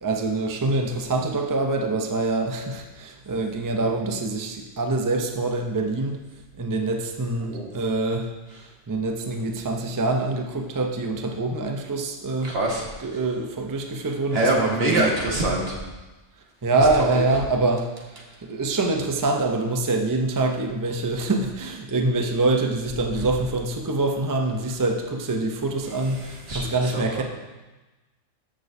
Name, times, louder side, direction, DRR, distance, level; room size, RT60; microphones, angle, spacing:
voice 1, 0.0-6.2 6.6-8.3 8.9-12.5 13.0-15.1 16.6-27.2, right 2 dB, 25° right, 3 dB, 0.5 m, -25 dB
voice 2, 12.4-12.9 14.3-15.8 17.0-17.2 26.2-27.2, right 2 dB, 55° right, -2 dB, 1.8 m, -25 dB
13.0 x 6.4 x 2.7 m, 1.1 s
omnidirectional pair, 1.3 m